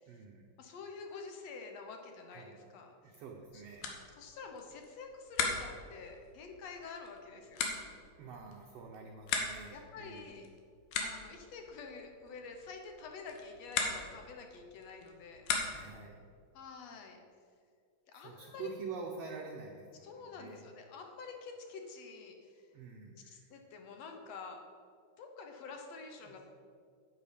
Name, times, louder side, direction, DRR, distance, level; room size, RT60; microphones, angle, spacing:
voice 1, 0.1-0.5 2.3-2.6 3.0-4.1 8.2-10.4 15.6-16.2 18.1-20.7 22.7-23.5 26.2-26.4, right 5 dB, 70° right, 0 dB, 1.6 m, -47 dB
voice 2, 0.6-2.9 3.5-3.6 4.2-7.7 9.7-10.5 11.0-15.5 16.5-17.2 18.1-18.7 20.0-22.7 23.3-24.6 25.2-26.4, left 4 dB, 65° left, 3 dB, 1.7 m, -48 dB
sound 1, 3.3-16.1, left 5 dB, 85° left, 2.9 m, -40 dB
9.8 x 9.0 x 5.1 m, 2.2 s
omnidirectional pair, 3.9 m